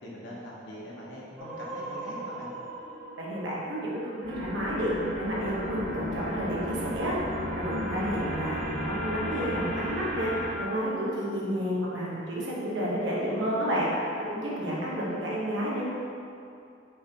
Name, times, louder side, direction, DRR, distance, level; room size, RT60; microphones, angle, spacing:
voice 1, 0.0-2.5, equal, 80° left, -5 dB, 1.0 m, -42 dB
sound 1, 1.4-3.9 4.2-10.5, left 1 dB, 40° right, 0.8 m, -35 dB
voice 2, 3.2-7.2 7.5-13.9 14.2-15.9, equal, 85° right, -5 dB, 1.1 m, -31 dB
Wind instrument woodwind instrument, 4.5-9.1, right 2 dB, 30° left, 0.9 m, -45 dB
5.4 x 3.2 x 2.9 m, 2.6 s
head